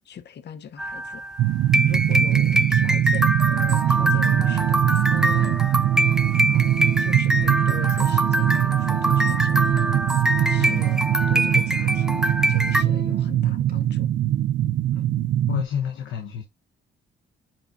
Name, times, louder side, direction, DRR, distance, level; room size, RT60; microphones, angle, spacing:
voice 1, 0.0-1.2 1.9-5.6 6.4-9.9 10.5-11.0 11.3-14.1, left 8 dB, 60° left, 1.0 m, -40 dB
sound 1, 0.8-12.8, equal, 5° right, 0.5 m, -24 dB
sound 2, 1.4-15.6, right 12 dB, 65° right, 0.4 m, -22 dB
Organ, 2.7-2.8 3.3-3.5 3.8-13.3 13.7-13.8, right 1 dB, 50° right, 1.7 m, -38 dB
voice 2, 15.5-16.4, left 8 dB, 75° left, 1.2 m, -28 dB
8.8 x 4.6 x 2.6 m
cardioid pair, 90°, 20 cm